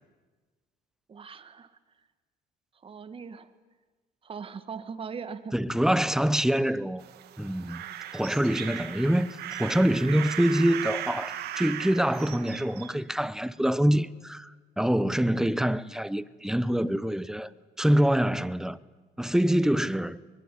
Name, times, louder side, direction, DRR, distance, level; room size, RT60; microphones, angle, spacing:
voice 1, 1.1-1.7 2.8-3.5 4.2-5.5, right 6 dB, 30° right, 1.5 m, -40 dB
voice 2, 5.5-7.0 7.4-7.8 8.1-17.5 17.8-18.8 19.2-20.2, equal, 5° right, 0.8 m, -25 dB
sound 1, 7.0-12.9, right 11 dB, 75° right, 2.0 m, -37 dB
23.5 x 21.5 x 9.9 m
cardioid pair, 110°, 17 cm